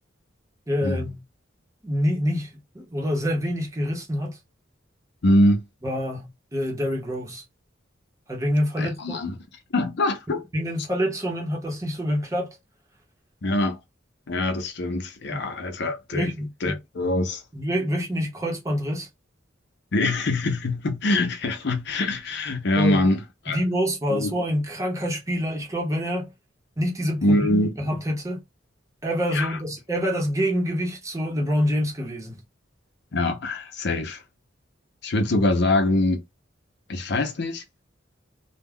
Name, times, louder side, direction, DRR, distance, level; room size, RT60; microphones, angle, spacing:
voice 1, 0.7-1.2 1.8-4.4 5.8-7.4 8.3-9.2 10.5-12.6 15.3-15.4 16.1-16.8 17.5-19.1 22.8-23.0 23.5-26.3 26.8-28.4 29.0-32.4, equal, 15° right, 0.8 m, -26 dB
voice 2, 5.2-5.6 8.8-9.4 9.7-10.4 13.4-13.8 14.3-16.3 16.6-17.4 19.9-23.6 24.1-24.3 27.2-27.7 29.3-29.6 33.1-34.2 35.0-36.2 36.9-37.6, left 1 dB, 60° left, 0.6 m, -24 dB
2.3 x 2.2 x 3.5 m
head